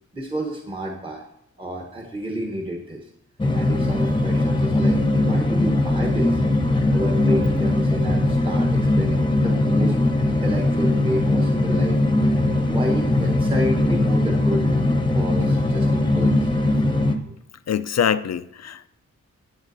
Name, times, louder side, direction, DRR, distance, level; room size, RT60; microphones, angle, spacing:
voice 1, 0.1-1.2 1.6-3.1 3.5-6.4 6.9-10.0 10.2-14.7 15.0-16.5 17.3-17.4, equal, 15° right, 1 dB, 1.1 m, -30 dB
sound 1, 3.4-17.2, left 2 dB, 15° left, 0.9 m, -20 dB
voice 2, 17.7-18.9, left 8 dB, 60° left, 14 dB, 0.5 m, -24 dB
20.0 x 7.3 x 2.7 m, 0.77 s
wide cardioid pair, 115°, 30 cm